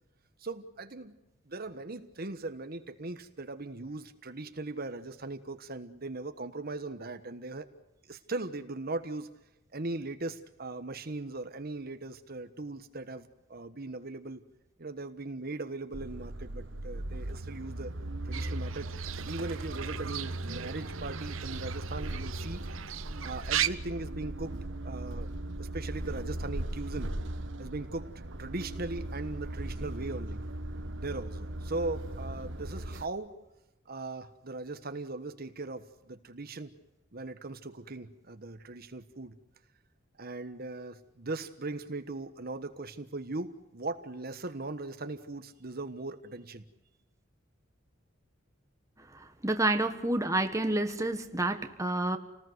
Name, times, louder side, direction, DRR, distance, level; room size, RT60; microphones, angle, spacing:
voice 1, 0.4-1.2 1.5-7.7 8.1-9.4 9.7-14.4 14.8-17.9 18.2-18.9 19.2-22.6 23.2-25.3 25.6-27.1 27.6-28.1 28.4-30.4 30.9-33.3 33.9-36.7 37.1-39.4 40.2-46.6, right 2 dB, 50° right, 9 dB, 1.3 m, -39 dB
sound 1, 15.9-33.1, right 1 dB, 65° right, 1.5 m, -38 dB
Fowl / Bird, 18.3-23.7, right 11 dB, 85° right, 0.9 m, -37 dB
voice 2, 49.4-52.2, right 2 dB, 15° right, 6 dB, 1.5 m, -29 dB
29.5 x 19.5 x 8.0 m, 0.98 s
head